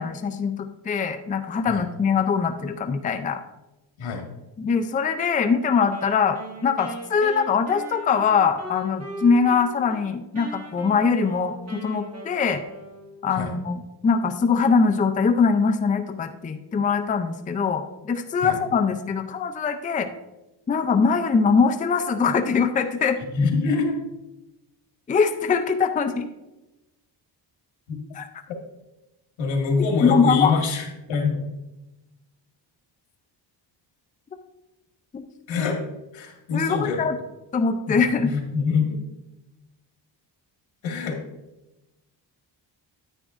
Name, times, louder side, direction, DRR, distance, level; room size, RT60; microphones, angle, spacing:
voice 1, 0.0-3.4 4.6-12.6 13.2-20.1 20.7-23.2 25.1-26.3 28.1-28.3 29.9-30.6 35.1-35.2 36.5-37.2 37.5-38.3, left 5 dB, 20° left, 7 dB, 0.4 m, -22 dB
Wind instrument woodwind instrument, 5.9-10.1 10.3-13.3, right 1 dB, 35° right, 1.9 m, -39 dB
voice 2, 23.3-23.9 27.9-28.0 29.4-31.6 35.5-35.8 36.1-37.1 37.9-39.0 40.8-41.2, left 4 dB, 85° left, 2 dB, 1.9 m, -25 dB
9.8 x 9.1 x 2.5 m, 1.0 s
cardioid pair, 140°, 44 cm